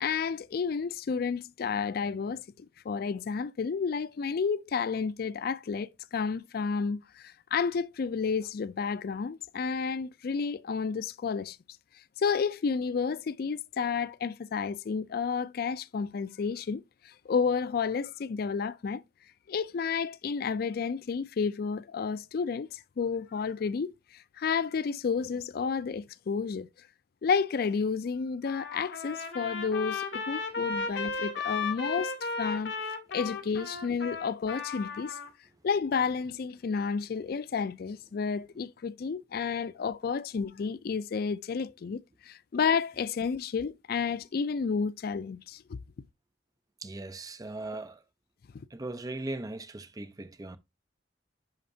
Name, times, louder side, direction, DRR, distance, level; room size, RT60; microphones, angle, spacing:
voice 1, 0.0-11.6 12.2-19.0 19.5-26.7 27.2-32.1 32.4-32.7 33.1-35.2 35.6-45.8, left 5 dB, 55° left, 0.4 m, -31 dB
Trumpet, 28.5-35.3, left 4 dB, 75° left, 1.7 m, -35 dB
voice 2, 46.8-48.0 48.7-50.6, right 2 dB, 20° right, 0.6 m, -39 dB
10.5 x 4.2 x 2.7 m
head